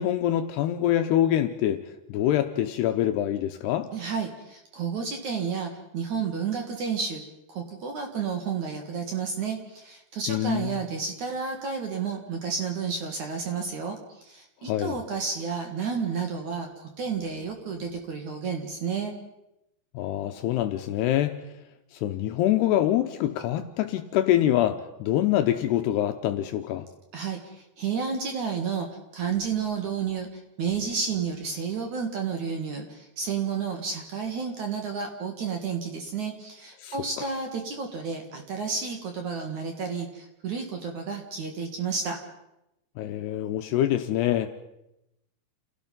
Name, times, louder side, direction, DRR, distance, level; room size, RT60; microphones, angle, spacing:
voice 1, 0.0-1.8 2.1-3.9 10.3-10.7 14.6-15.0 19.9-21.4 21.9-26.9 36.8-37.3 43.0-44.6, left 12 dB, 75° left, 7 dB, 2.6 m, -25 dB
voice 2, 3.9-7.2 7.5-19.1 27.1-28.9 29.1-30.3 30.6-42.2, right 6 dB, 50° right, 4 dB, 2.6 m, -31 dB
29.5 x 17.0 x 5.4 m, 0.89 s
omnidirectional pair, 5.4 m